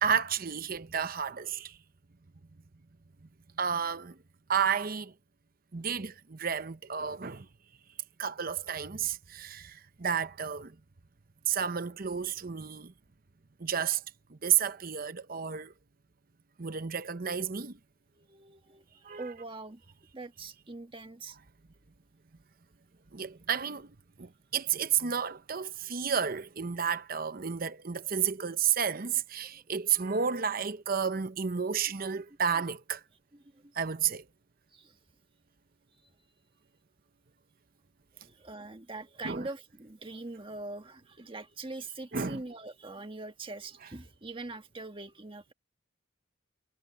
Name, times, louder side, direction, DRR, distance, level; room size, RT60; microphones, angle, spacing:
voice 1, 0.0-1.8 3.6-4.2 4.5-5.1 5.7-7.5 8.2-10.8 11.5-12.9 13.6-14.0 14.3-15.7 16.6-17.8 19.0-19.2 23.1-33.0 33.7-34.2 39.2-39.5 42.1-42.4, right 7 dB, 45° right, 0.8 m, -31 dB
voice 2, 18.1-19.9 20.1-21.4 33.5-33.7 34.7-35.0 38.2-45.5, right 2 dB, 25° right, 1.5 m, -43 dB
head